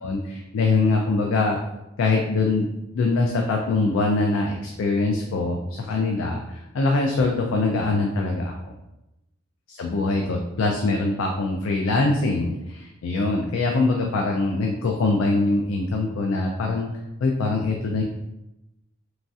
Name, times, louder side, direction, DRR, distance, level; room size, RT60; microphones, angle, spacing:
voice 1, 0.0-1.6 2.0-2.7 2.9-8.8 9.7-16.9 17.2-18.0, left 3 dB, 85° left, 1 dB, 0.3 m, -23 dB
3.0 x 2.3 x 2.6 m, 0.93 s
head